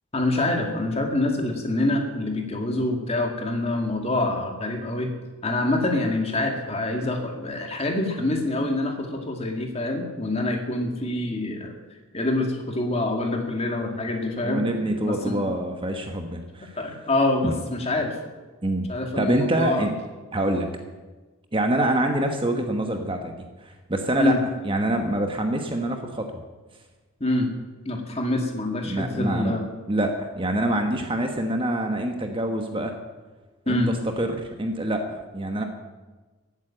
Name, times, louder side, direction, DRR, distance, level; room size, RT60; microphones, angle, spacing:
voice 1, 0.1-5.1 5.4-11.7 12.1-14.7 15.0-15.4 16.8-18.2 18.9-19.9 24.2-24.4 27.2-27.5 27.9-29.6 33.7-33.9, left 2 dB, 25° left, 3 dB, 2.1 m, -26 dB
voice 2, 14.4-16.8 17.4-17.5 18.6-18.9 19.2-20.0 20.3-20.7 21.5-23.3 23.6-24.4 24.6-26.3 28.9-29.6 29.9-32.9 33.7-35.6, right 1 dB, 25° right, 5 dB, 1.2 m, -25 dB
14.5 x 8.6 x 8.9 m, 1.2 s
head